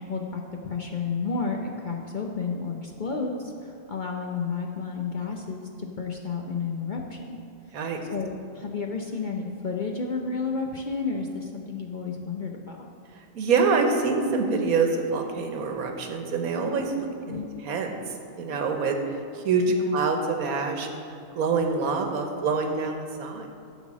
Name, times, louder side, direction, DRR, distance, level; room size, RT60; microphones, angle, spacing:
voice 1, 0.0-7.4 8.1-12.8 17.3-17.5 19.7-19.9, left 4 dB, 45° left, 1 dB, 0.6 m, -31 dB
voice 2, 13.3-17.9 18.3-19.0 19.4-21.0 21.3-23.5, right 4 dB, 90° right, 4 dB, 1.4 m, -25 dB
12.0 x 4.1 x 7.2 m, 2.4 s
omnidirectional pair, 1.5 m